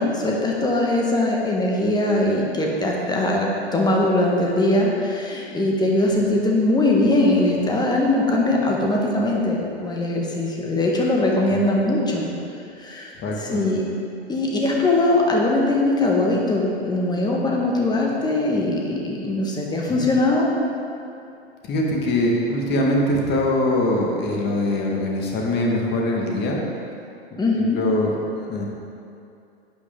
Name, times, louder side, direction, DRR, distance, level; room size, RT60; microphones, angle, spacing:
voice 1, 0.0-12.3 12.8-13.1 13.4-13.8 14.3-20.5 27.4-27.8, left 2 dB, 10° left, -1 dB, 1.6 m, -21 dB
voice 2, 13.2-13.7 19.9-20.1 21.6-26.6 27.3-28.6, left 1 dB, 30° left, -1 dB, 1.9 m, -23 dB
11.5 x 8.3 x 3.9 m, 2.6 s
figure-of-eight pair, 95°, 33 cm